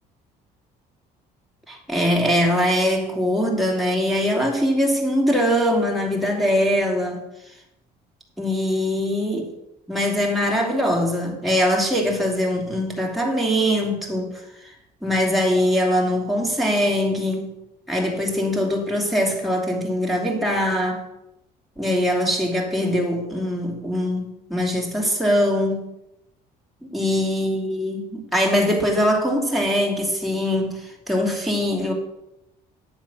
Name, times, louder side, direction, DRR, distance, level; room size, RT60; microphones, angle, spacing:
voice 1, 1.7-7.2 8.4-9.5 9.9-14.3 15.0-17.5 17.9-21.0 21.8-25.8 26.8-31.9, equal, ahead, -1 dB, 2.8 m, -22 dB
10.0 x 7.1 x 6.1 m, 0.87 s
cardioid pair, 110°, 17 cm